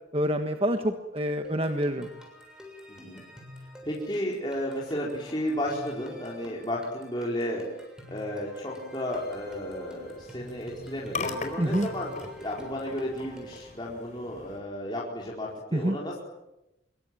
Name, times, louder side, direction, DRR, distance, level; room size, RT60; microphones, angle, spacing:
voice 1, 0.1-2.1 11.6-11.9 15.7-16.0, equal, 30° right, 6 dB, 1.5 m, -27 dB
sound 1, 1.4-13.8, left 1 dB, 5° right, 6.9 m, -48 dB
voice 2, 2.9-3.2 3.8-7.6 8.1-12.1 12.4-16.2, equal, 25° left, -3 dB, 4.6 m, -33 dB
sound 2, 9.1-14.6, left 3 dB, 40° left, 4.3 m, -40 dB
26.0 x 23.5 x 9.3 m, 0.92 s
head